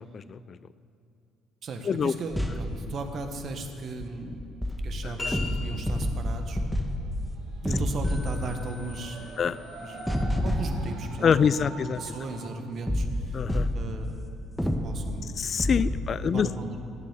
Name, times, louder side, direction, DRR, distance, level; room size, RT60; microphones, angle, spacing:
voice 1, 0.1-0.6 1.8-2.1 5.0-5.1 9.4-9.6 11.2-12.2 13.3-13.7 15.4-16.5, left 7 dB, 45° left, 17 dB, 0.4 m, -25 dB
voice 2, 1.6-6.6 7.6-9.5 9.8-11.7 12.0-13.4 13.7-14.2 14.8-15.4 15.8-16.8, right 3 dB, 50° right, 6 dB, 1.5 m, -37 dB
sound 1, 2.3-3.2 3.6-3.7 4.0-11.6 12.9-14.3 14.6-16.1, left 1 dB, ahead, 1.8 m, -30 dB
sound 2, 5.2-6.3, left 3 dB, 20° left, 3.6 m, -36 dB
sound 3, 6.1-12.5, right 2 dB, 65° right, 2.2 m, -46 dB
16.5 x 7.5 x 6.9 m, 2.6 s
hypercardioid pair, 50°, 0 cm